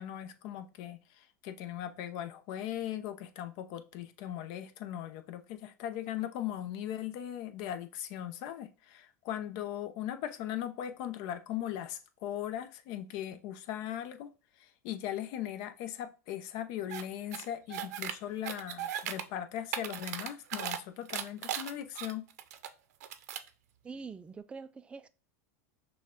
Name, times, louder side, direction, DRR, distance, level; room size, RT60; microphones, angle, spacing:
voice 1, 0.0-14.3 14.6-22.2, left 11 dB, 55° left, 0.7 m, -39 dB
sound 1, 16.9-17.0 17.3-18.1 18.4-19.2 19.6-20.8 21.1-22.7 23.0-23.5, right 10 dB, 85° right, 0.6 m, -37 dB
voice 2, 23.8-25.1, right 4 dB, 15° right, 0.3 m, -44 dB
6.1 x 2.3 x 3.7 m
supercardioid pair, 125°, 9 cm